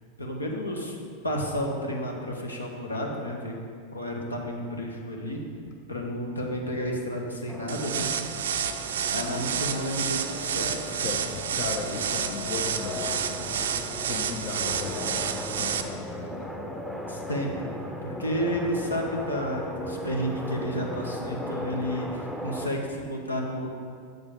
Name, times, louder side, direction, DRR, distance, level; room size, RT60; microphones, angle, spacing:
voice 1, 0.2-1.0 1.2-3.5 3.9-5.4 5.9-8.1 9.1-11.0 17.1-23.7, equal, 80° left, 0 dB, 1.0 m, -31 dB
sound 1, 7.5-22.7, left 1 dB, ahead, 0.6 m, -37 dB
sound 2, 7.7-15.8, right 8 dB, 65° right, 0.4 m, -30 dB
voice 2, 11.0-13.5 14.1-16.5, left 5 dB, 40° left, 3 dB, 0.5 m, -36 dB
7.8 x 6.9 x 3.8 m, 2.3 s
figure-of-eight pair, 90°, 0 cm